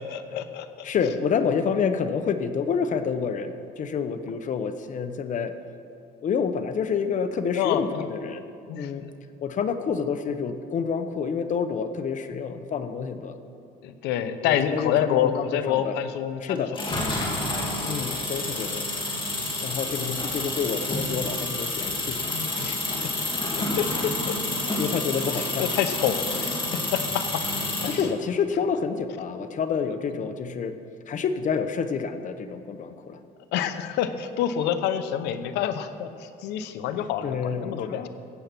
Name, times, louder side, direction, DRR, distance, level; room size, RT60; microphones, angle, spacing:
voice 1, 0.0-0.9 7.5-8.1 8.7-9.1 13.8-16.7 22.3-23.0 23.5-24.6 25.3-26.6 26.9-27.4 27.8-28.0 30.1-30.2 33.5-38.0, left 9 dB, 90° left, 10 dB, 0.8 m, -28 dB
voice 2, 0.8-5.5 6.2-8.4 8.7-9.1 9.4-13.3 14.4-16.0 16.4-16.7 17.8-18.9 19.6-22.2 22.6-22.8 24.8-25.7 27.9-30.8 31.1-33.2 37.2-38.1, left 6 dB, 50° left, 9 dB, 0.9 m, -28 dB
sound 1, 16.7-28.1, left 2 dB, 30° left, 2.7 m, -29 dB
15.0 x 8.3 x 6.0 m, 2.5 s
cardioid pair, 110°, 17 cm